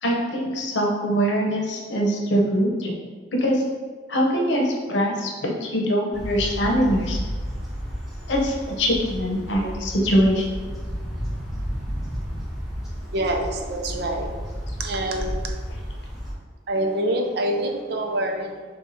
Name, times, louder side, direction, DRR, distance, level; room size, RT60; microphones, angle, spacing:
voice 1, 0.0-2.9 3.3-3.6 4.1-7.2 8.3-10.7, equal, 75° left, -1 dB, 0.8 m, -23 dB
sound 1, 6.1-16.3, equal, ahead, 0.9 m, -32 dB
voice 2, 13.0-14.3 14.8-15.4 16.7-18.6, right 1 dB, 60° right, 2 dB, 0.5 m, -26 dB
6.9 x 2.3 x 2.7 m, 1.5 s
head